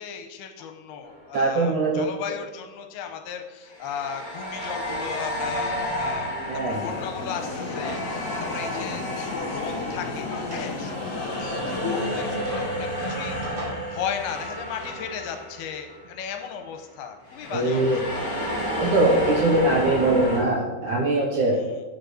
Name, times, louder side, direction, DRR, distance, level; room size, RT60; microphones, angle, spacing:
voice 1, 0.0-13.6 13.9-18.8 21.5-21.8, left 7 dB, 80° left, 6 dB, 2.6 m, -36 dB
sound 1, 1.0-1.3 3.7-16.1 16.3-16.6 17.3-20.4, equal, 30° left, 1.6 m, -31 dB
voice 2, 1.3-2.0 6.5-6.8 17.5-18.0 18.8-21.6, right 2 dB, 70° right, -1 dB, 1.9 m, -22 dB
Drawer open or close, 3.1-3.2 3.7-5.1 5.5-5.6 6.6-8.3 8.7-8.8 9.6-10.8 12.0-13.7, right 1 dB, 90° right, 5.3 m, -42 dB
sound 2, 6.7-12.4, left 4 dB, 60° left, 2.8 m, -33 dB
9.1 x 5.2 x 6.3 m, 1.2 s
omnidirectional pair, 4.7 m